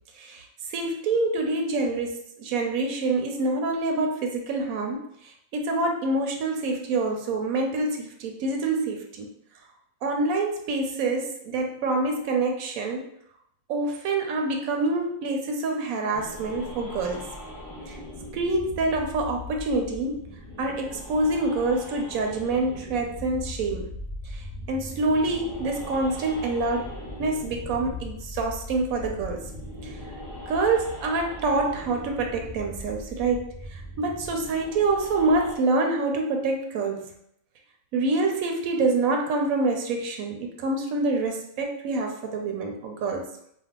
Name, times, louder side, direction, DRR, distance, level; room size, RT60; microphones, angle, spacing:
voice 1, 0.7-5.1 5.5-9.3 10.0-13.0 13.7-17.3 17.9-18.0 18.3-20.2 20.6-23.9 24.3-24.4 24.7-26.9 27.2-29.5 29.8-29.9 30.5-37.1 37.9-43.3, right 3 dB, 85° right, 2 dB, 1.0 m, -26 dB
sound 1, 16.1-35.6, left 1 dB, 20° left, 0.5 m, -39 dB
2.7 x 2.1 x 3.6 m, 0.72 s
omnidirectional pair, 1.4 m